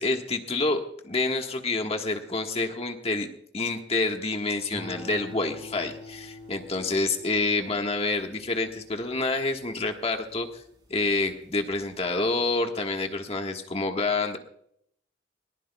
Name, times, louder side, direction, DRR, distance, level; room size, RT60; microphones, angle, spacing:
voice 1, 0.0-3.3 3.5-10.6 10.9-14.4, left 3 dB, 35° left, 4 dB, 1.5 m, -28 dB
sound 1, 4.7-11.2 11.7-12.2, left 2 dB, 25° right, 4.9 m, -46 dB
21.0 x 19.5 x 2.3 m, 0.70 s
head